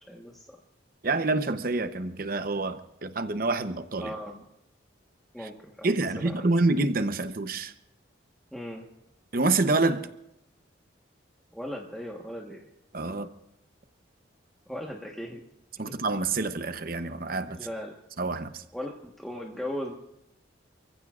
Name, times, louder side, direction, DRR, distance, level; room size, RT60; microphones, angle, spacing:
voice 1, 0.1-0.6 4.0-4.4 5.3-6.6 8.5-8.8 11.5-12.6 14.7-15.4 15.9-16.0 17.5-17.9 18.7-19.9, equal, ahead, -2 dB, 1.3 m, -38 dB
voice 2, 1.0-4.1 5.4-5.5 5.8-7.7 9.3-10.1 12.9-13.3 15.8-17.6 18.2-18.6, right 3 dB, 50° right, 10 dB, 0.8 m, -27 dB
28.5 x 15.5 x 2.5 m, 0.87 s
head